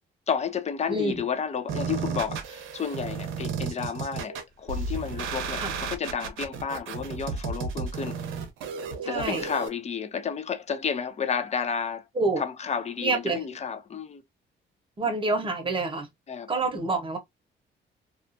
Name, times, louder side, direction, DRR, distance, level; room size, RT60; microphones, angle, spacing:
voice 1, 0.3-8.2 9.1-12.1 12.4-14.2 16.3-16.5, left 6 dB, 35° left, 0.5 m, -31 dB
sound 1, 1.7-9.7, right 5 dB, 85° right, 0.6 m, -33 dB
voice 2, 9.0-9.5 12.2-12.4 13.0-13.4 15.0-16.1 16.5-17.2, right 3 dB, 25° right, 0.9 m, -27 dB
2.4 x 2.3 x 2.5 m
cardioid pair, 90°, 20 cm